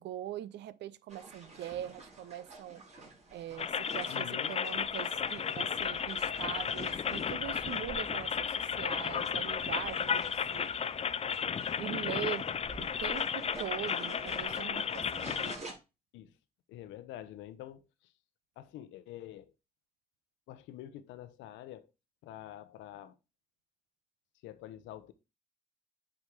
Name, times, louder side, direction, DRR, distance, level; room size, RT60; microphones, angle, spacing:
voice 1, 0.0-2.8 3.3-10.9 11.8-12.5 12.8-15.7, right 11 dB, 60° right, 0.6 m, -42 dB
sound 1, 1.1-15.7, right 3 dB, 35° right, 3.5 m, -51 dB
sound 2, 3.6-15.6, left 7 dB, 30° left, 0.5 m, -34 dB
voice 2, 4.1-4.6 16.1-16.3 16.7-17.8 18.6-19.5 20.5-21.9 22.2-23.2 24.4-25.1, left 12 dB, 75° left, 0.8 m, -46 dB
sound 3, 4.6-13.9, left 2 dB, 10° left, 1.4 m, -58 dB
8.7 x 3.6 x 4.7 m
hypercardioid pair, 50°, 20 cm